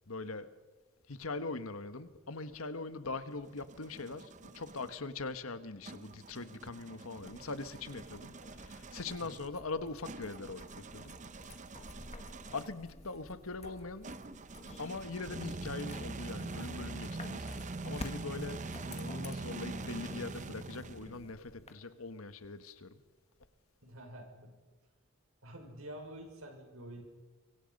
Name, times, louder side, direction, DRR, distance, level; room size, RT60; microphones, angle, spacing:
voice 1, 0.1-0.5 1.1-10.6 10.9-11.2 12.5-14.1 14.8-17.6 17.8-23.0, left 3 dB, 80° left, 1.4 m, -42 dB
sound 1, 3.1-4.9 5.8-12.8 14.0-21.3, right 3 dB, 35° right, 0.8 m, -44 dB
sound 2, 7.2-21.7, left 2 dB, 30° left, 1.8 m, -52 dB
voice 2, 23.8-24.6 25.4-27.1, right 1 dB, 80° right, 5.8 m, -48 dB
25.0 x 24.5 x 5.4 m
head